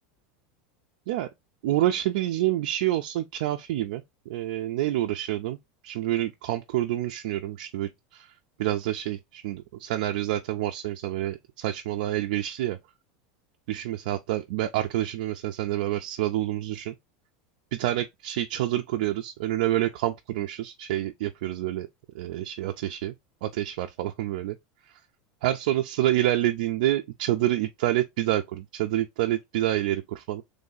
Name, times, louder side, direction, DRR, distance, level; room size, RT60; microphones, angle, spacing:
voice 1, 1.6-5.6 5.8-12.8 13.7-16.9 17.7-21.9 22.1-23.1 23.4-24.6 24.8-25.0 25.4-30.4, right 14 dB, 65° right, 0.4 m, -28 dB
3.2 x 2.7 x 3.8 m
supercardioid pair, 170°, 5 cm